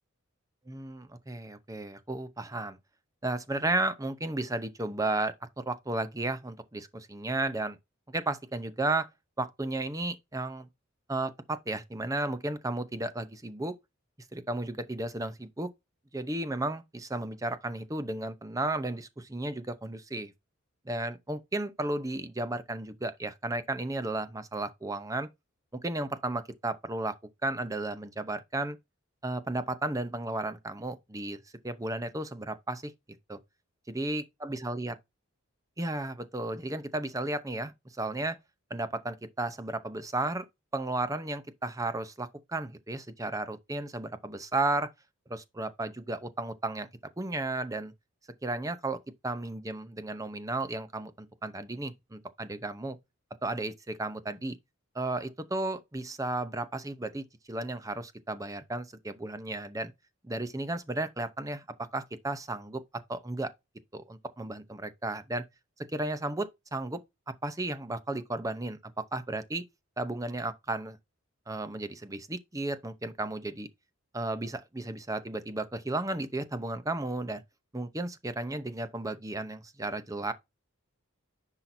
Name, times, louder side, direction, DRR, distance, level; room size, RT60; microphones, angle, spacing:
voice 1, 0.7-2.8 3.2-7.8 8.1-9.1 9.4-10.7 11.1-13.7 14.3-15.7 16.1-20.3 20.9-25.3 25.8-27.2 27.4-28.8 29.2-31.4 31.6-32.9 33.3-33.4 33.9-34.9 35.8-38.4 38.7-40.4 40.7-44.9 45.3-46.9 47.2-47.9 48.4-53.0 53.4-54.6 54.9-59.9 60.2-62.8 63.1-63.5 63.9-65.4 65.9-67.0 67.3-69.6 70.0-71.0 71.5-73.7 74.1-77.4 77.7-80.3, right 2 dB, 15° right, 0.7 m, -34 dB
10.0 x 5.8 x 2.7 m
head